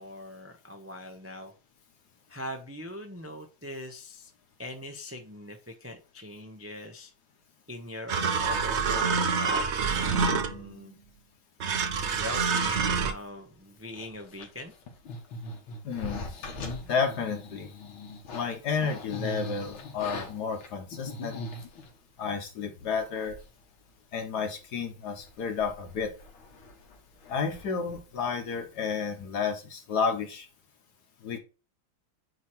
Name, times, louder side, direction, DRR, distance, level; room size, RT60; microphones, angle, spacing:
voice 1, 0.0-1.5 2.3-4.3 4.6-7.1 7.7-8.1 8.4-9.7 10.0-11.0 12.0-14.7, left 1 dB, 10° right, 0.6 m, -41 dB
sound 1, 8.1-10.7 11.6-13.1, right 5 dB, 65° right, 0.7 m, -27 dB
sound 2, 13.9-22.0 22.6-22.7 23.0-23.6 23.9-24.0 24.4-24.8 25.1-28.6 28.9-29.2, left 2 dB, 80° left, 2.4 m, -41 dB
voice 2, 15.8-16.2 16.9-17.7 18.3-21.4 22.2-23.4 24.1-26.1 27.3-30.5 31.2-31.4, left 5 dB, 60° left, 1.7 m, -31 dB
9.4 x 3.2 x 4.4 m
omnidirectional pair, 2.2 m